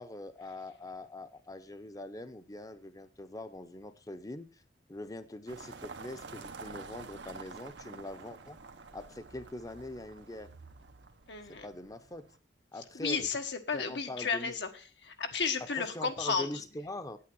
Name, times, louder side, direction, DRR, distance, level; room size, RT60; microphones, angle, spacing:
voice 1, 0.0-4.6 4.9-8.6 8.9-10.5 11.6-12.3 12.7-13.3 13.7-14.6 15.7-17.2, left 1 dB, 20° left, 10 dB, 0.7 m, -43 dB
sound 1, 5.5-12.4, right 4 dB, 80° right, 1.0 m, -49 dB
voice 2, 11.3-11.7 12.9-14.7 15.0-16.5, left 5 dB, 75° left, 5 dB, 1.4 m, -33 dB
8.7 x 8.7 x 6.2 m, 0.39 s
head